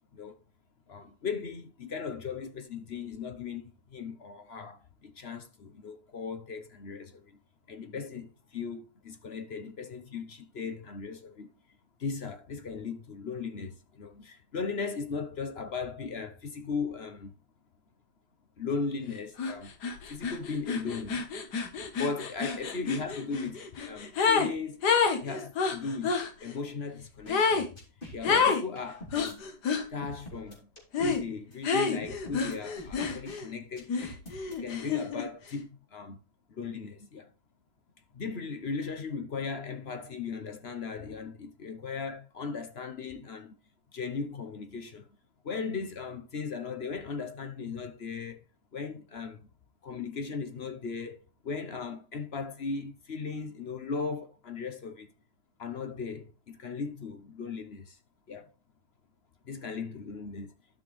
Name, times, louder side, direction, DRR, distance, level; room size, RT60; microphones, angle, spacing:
voice 1, 0.9-7.4 7.7-11.5 12.0-17.3 18.6-19.7 20.1-21.3 21.9-24.8 25.2-27.7 28.1-29.4 29.7-30.7 31.0-34.1 34.6-36.2 36.5-37.3 38.1-43.6 43.9-45.1 45.4-48.4 48.7-49.5 49.8-55.1 55.6-58.0 58.3-58.5 59.4-60.5, left 5 dB, 45° left, 0.9 m, -37 dB
sound 1, 19.4-19.5 19.8-24.5 24.8-26.3 27.3-27.7 28.2-28.6 29.1-29.9 30.9-31.2 31.6-33.5 33.9-35.3, left 5 dB, 70° left, 1.8 m, -28 dB
sound 2, 27.3-27.4 27.8-29.3 30.0-31.2 31.5-31.6 32.0-33.4 33.8-34.5, left 1 dB, 30° left, 3.4 m, -45 dB
12.5 x 5.8 x 3.2 m
omnidirectional pair, 1.9 m